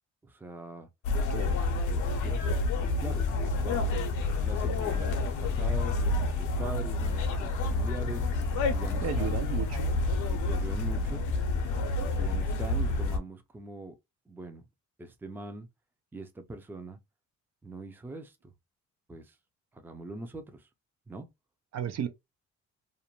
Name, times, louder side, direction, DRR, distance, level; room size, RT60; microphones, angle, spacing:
voice 1, 0.2-0.9 1.9-2.6 3.0-8.3 8.7-9.4 10.3-11.2 12.0-14.0 14.3-14.6 15.0-15.7 16.1-17.0 17.6-18.5 19.1-19.3 19.7-20.7 21.1-21.3, right 2 dB, 5° right, 0.4 m, -42 dB
sound 1, 1.0-13.2, left 3 dB, 85° left, 0.6 m, -29 dB
voice 2, 9.0-9.9 21.7-22.1, right 9 dB, 60° right, 0.5 m, -33 dB
2.5 x 2.1 x 2.9 m
cardioid pair, 90°, 30 cm